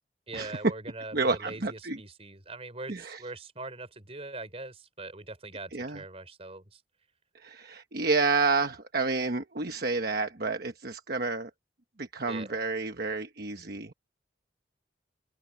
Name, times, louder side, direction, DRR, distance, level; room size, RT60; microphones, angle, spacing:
voice 1, 0.3-6.8 12.3-12.6, right 2 dB, 35° right, 4.9 m, -42 dB
voice 2, 1.1-2.0 2.9-3.2 5.7-6.0 7.3-11.5 12.0-13.9, right 4 dB, 55° right, 1.1 m, -30 dB
open air
head